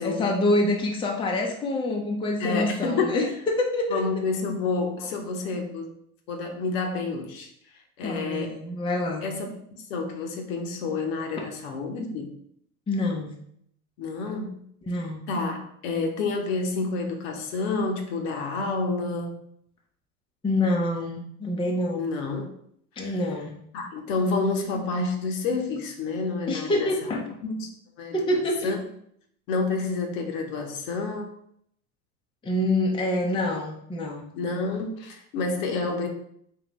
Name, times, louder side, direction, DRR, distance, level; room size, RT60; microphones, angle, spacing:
voice 1, 0.0-4.0 8.0-9.2 12.9-13.3 14.8-15.3 20.4-22.0 23.0-23.5 26.5-27.3 28.1-28.7 32.4-34.2, left 1 dB, 10° left, 0 dB, 0.6 m, -26 dB
voice 2, 2.4-3.3 3.9-5.9 6.3-7.5 8.0-8.6 9.2-12.3 14.0-14.6 15.3-19.4 22.0-22.5 23.0-23.1 23.7-26.9 27.4-27.7 28.0-28.1 28.6-28.8 29.5-31.3 34.3-36.1, left 3 dB, 60° left, 3 dB, 1.0 m, -29 dB
3.8 x 3.2 x 3.1 m, 0.68 s
hypercardioid pair, 95°, 43 cm